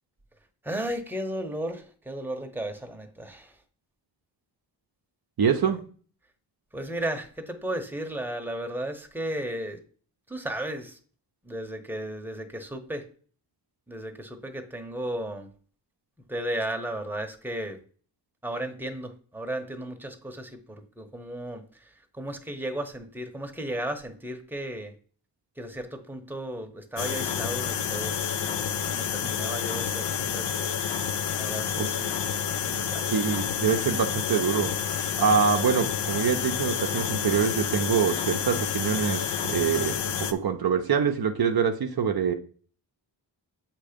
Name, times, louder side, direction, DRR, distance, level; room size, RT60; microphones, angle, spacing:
voice 1, 0.6-3.5 5.6-5.8 6.7-9.8 10.3-11.0 11.4-13.1 13.9-15.5 16.3-17.8 18.4-24.9 25.6-30.7 31.4-32.1 32.7-33.1, right 1 dB, 5° right, 4 dB, 0.9 m, -35 dB
voice 2, 5.4-5.8 31.8-31.9 33.1-42.3, right 6 dB, 55° right, 5 dB, 0.7 m, -25 dB
sound 1, 27.0-40.3, left 8 dB, 65° left, 0.7 m, -29 dB
7.3 x 2.9 x 5.0 m, 0.44 s
cardioid pair, 70°, 45 cm